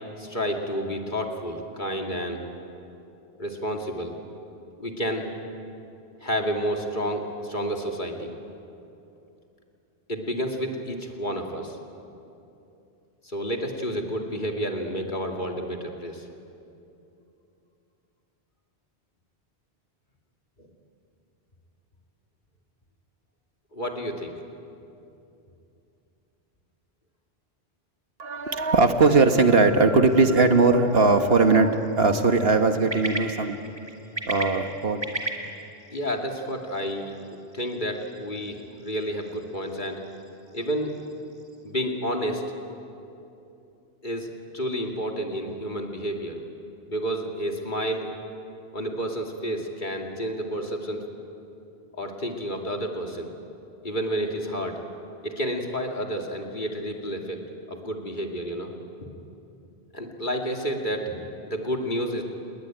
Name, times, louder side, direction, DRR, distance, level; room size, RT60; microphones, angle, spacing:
voice 1, 0.2-2.4 3.4-4.1 4.8-5.3 6.2-8.3 10.1-11.8 13.2-16.3 20.6-20.7 23.7-24.3 35.9-37.1 37.5-40.0 40.5-41.0 41.6-42.4 44.0-46.4 46.9-48.1 48.7-51.0 52.0-53.3 53.8-54.8 55.2-58.7 59.9-61.1 61.5-62.2, equal, 45° left, 2 dB, 2.7 m, -30 dB
voice 2, 28.2-33.6 34.3-35.0, right 3 dB, 65° right, 7 dB, 1.6 m, -19 dB
sound 1, 30.1-41.7, right 2 dB, 25° right, 2.5 m, -39 dB
28.5 x 21.0 x 9.1 m, 2.8 s
omnidirectional pair, 1.1 m